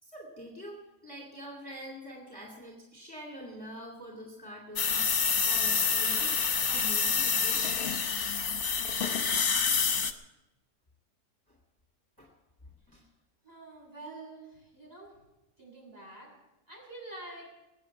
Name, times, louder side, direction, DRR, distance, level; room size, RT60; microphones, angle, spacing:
voice 1, 0.0-5.1 5.4-6.4 6.6-7.6 11.5-11.6 12.2-12.3 12.9-13.0, equal, 15° left, -1 dB, 2.5 m, -45 dB
sound 1, 4.8-10.1, left 6 dB, 50° left, 1.2 m, -27 dB
voice 2, 13.4-15.1 15.6-16.3 16.7-17.5, right 2 dB, 30° right, -3 dB, 7.5 m, -46 dB
21.5 x 8.6 x 7.2 m, 0.96 s
omnidirectional pair, 1.3 m